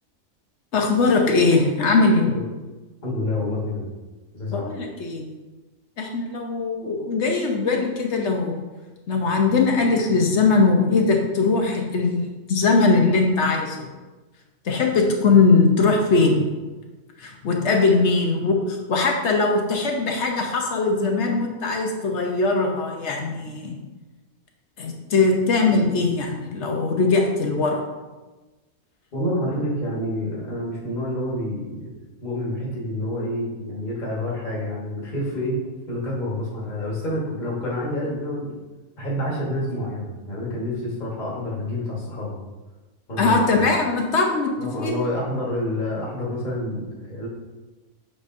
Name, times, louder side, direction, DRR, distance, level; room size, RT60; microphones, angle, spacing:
voice 1, 0.7-2.3 4.5-5.3 6.0-8.6 9.1-13.9 14.6-16.5 17.2-23.8 24.8-27.8 43.2-45.0, left 3 dB, 60° left, 2 dB, 1.0 m, -20 dB
voice 2, 3.0-3.9 4.3-4.6 29.1-31.9 32.2-35.6 35.9-38.5 39.0-42.4 43.1-43.5 44.6-47.3, left 1 dB, 35° left, -5 dB, 1.5 m, -28 dB
7.3 x 4.9 x 2.6 m, 1.2 s
omnidirectional pair, 1.4 m